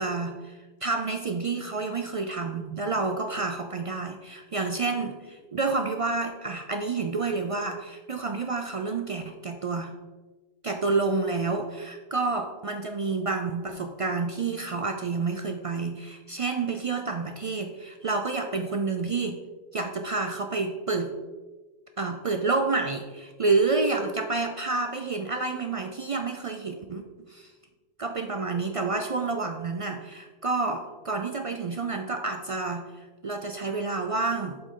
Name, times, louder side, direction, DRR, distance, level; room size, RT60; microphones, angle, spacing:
voice 1, 0.0-9.9 10.6-19.4 19.7-21.1 22.0-27.0 27.3-27.5 28.0-34.6, right 3 dB, 60° right, 5 dB, 0.3 m, -29 dB
7.6 x 5.2 x 3.7 m, 1.3 s
omnidirectional pair, 1.1 m